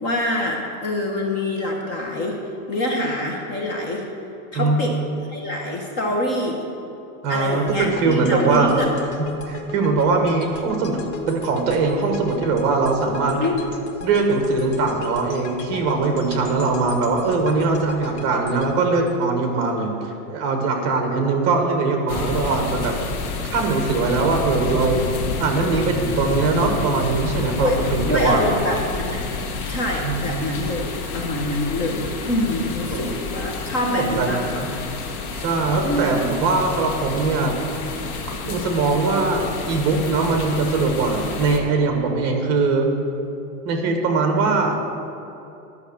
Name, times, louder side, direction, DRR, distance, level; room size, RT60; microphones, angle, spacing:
voice 1, 0.0-2.4 2.7-4.0 4.5-5.0 5.3-6.6 7.3-8.9 13.4-13.7 27.5-27.8 28.1-29.3 29.7-34.4 35.8-36.4, left 1 dB, 25° left, 0 dB, 0.9 m, -25 dB
voice 2, 7.2-8.7 9.5-11.0 11.3-13.4 14.0-22.9 23.5-25.1 25.4-28.8 30.0-30.3 32.9-33.0 33.8-34.7 35.3-37.6 38.4-42.9 43.6-44.8, right 3 dB, 30° right, 3 dB, 1.4 m, -21 dB
sound 1, 7.7-19.9, left 4 dB, 50° left, 1.0 m, -38 dB
sound 2, 22.1-41.6, left 4 dB, 70° left, 1.8 m, -29 dB
11.5 x 6.5 x 7.2 m, 2.8 s
supercardioid pair, 175°, 44 cm